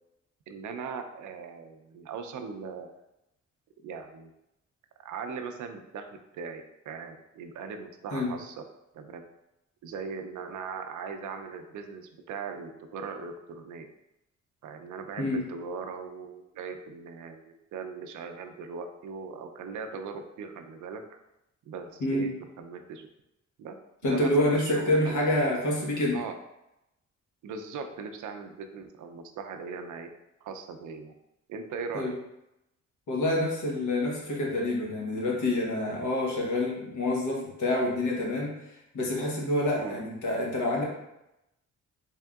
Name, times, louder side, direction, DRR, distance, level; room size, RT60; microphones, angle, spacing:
voice 1, 0.5-2.9 3.8-4.3 5.0-8.6 8.9-9.2 9.8-13.9 14.6-21.0 21.7-22.3 22.6-23.1 23.6-23.8 24.0-25.4 26.1-26.3 27.4-30.1 30.4-31.1 31.5-32.1 39.8-40.0, right 5 dB, 75° right, 6 dB, 0.5 m, -39 dB
voice 2, 24.0-26.2 31.9-32.1 33.1-40.8, left 1 dB, 75° left, -2 dB, 1.1 m, -27 dB
3.6 x 3.4 x 2.3 m, 0.89 s
wide cardioid pair, 155°, 30 cm